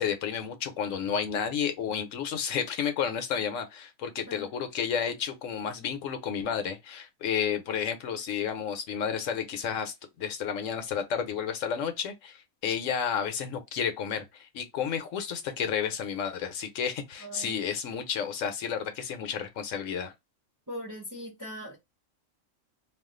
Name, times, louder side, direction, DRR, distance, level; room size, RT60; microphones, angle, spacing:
voice 1, 0.0-20.1, left 7 dB, 75° left, 1.0 m, -31 dB
voice 2, 17.2-17.6 20.7-21.8, equal, 20° right, 0.6 m, -40 dB
2.4 x 2.4 x 3.6 m
omnidirectional pair, 1.4 m